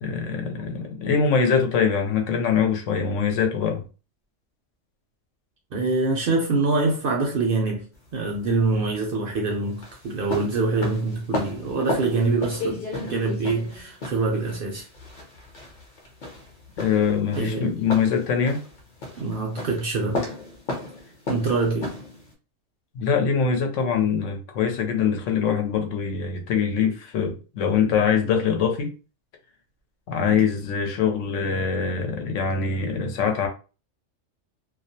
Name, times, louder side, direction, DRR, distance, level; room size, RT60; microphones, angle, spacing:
voice 1, 0.0-3.8 16.8-18.6 22.9-28.9 30.1-33.5, left 6 dB, 80° left, 0.9 m, -23 dB
voice 2, 5.7-7.8 8.1-14.9 17.3-17.6 19.2-20.2 21.3-21.9 30.3-30.4, right 3 dB, 60° right, 0.6 m, -25 dB
sound 1, 7.9-22.3, left 2 dB, 50° left, 0.7 m, -34 dB
2.3 x 2.0 x 2.7 m
omnidirectional pair, 1.3 m